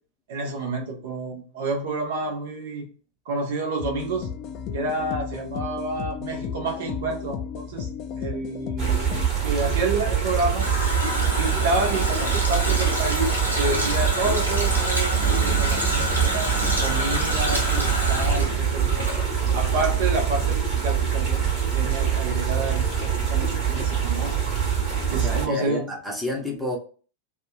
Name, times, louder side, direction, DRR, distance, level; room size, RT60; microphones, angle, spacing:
voice 1, 0.3-2.9 3.3-4.3 4.7-7.9 8.2-8.9 9.4-10.7 11.4-16.5 16.8-19.2 19.5-24.5 25.1-25.9, right 2 dB, 55° right, 0.8 m, -29 dB
sound 1, 3.8-9.3, left 7 dB, 40° left, 0.4 m, -33 dB
sound 2, 8.8-25.5, right 8 dB, 35° right, 1.2 m, -24 dB
Water tap faucet, 10.1-19.7 20.0-20.1, left 1 dB, 90° right, 0.7 m, -28 dB
voice 2, 25.1-26.8, left 2 dB, ahead, 0.8 m, -30 dB
2.7 x 2.2 x 2.2 m
figure-of-eight pair, 90°, 0 cm